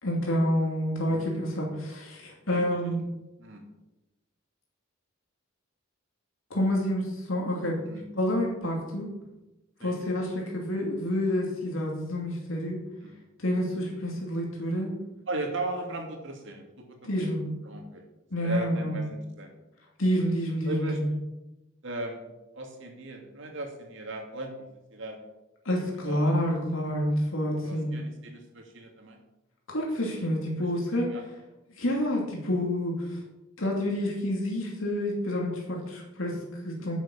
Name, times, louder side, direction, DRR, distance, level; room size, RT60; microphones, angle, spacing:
voice 1, 0.0-3.0 6.5-7.8 8.1-9.1 9.8-12.8 13.4-14.9 17.0-17.5 18.3-19.0 20.0-21.0 25.6-27.9 29.7-31.1 31.7-33.2 33.6-37.0, equal, 75° left, -2 dB, 2.7 m, -28 dB
voice 2, 2.5-2.8 3.4-3.6 7.8-8.0 9.8-10.0 10.7-10.8 13.0-13.1 15.3-18.0 18.4-19.5 20.6-21.0 21.8-25.2 26.0-26.7 27.6-29.2 30.6-30.7 31.0-31.2, right 2 dB, 65° right, 3 dB, 2.6 m, -38 dB
10.5 x 7.5 x 7.2 m, 0.97 s
head